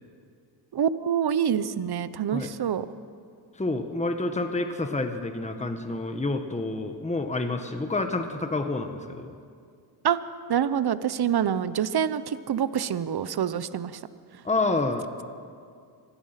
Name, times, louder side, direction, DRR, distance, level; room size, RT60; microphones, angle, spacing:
voice 1, 0.7-2.9 10.0-10.2 10.5-14.0, right 8 dB, 55° right, 14 dB, 0.9 m, -26 dB
voice 2, 3.6-9.3 14.4-15.3, left 2 dB, 15° left, 6 dB, 1.4 m, -28 dB
25.0 x 17.5 x 5.9 m, 2.3 s
cardioid pair, 85°, 46 cm